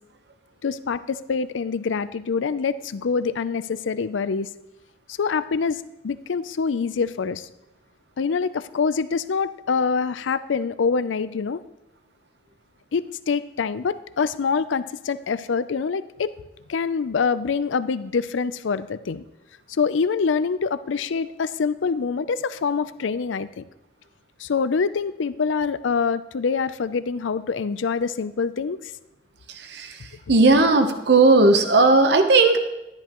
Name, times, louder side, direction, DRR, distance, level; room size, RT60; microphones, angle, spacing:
voice 1, 0.6-4.5 5.2-7.5 8.2-11.6 12.9-16.3 16.7-19.2 19.8-23.6 24.4-28.8, left 5 dB, 85° left, 15 dB, 0.5 m, -25 dB
voice 2, 30.3-32.6, right 3 dB, 60° right, 7 dB, 0.9 m, -16 dB
12.0 x 10.5 x 3.0 m, 0.92 s
head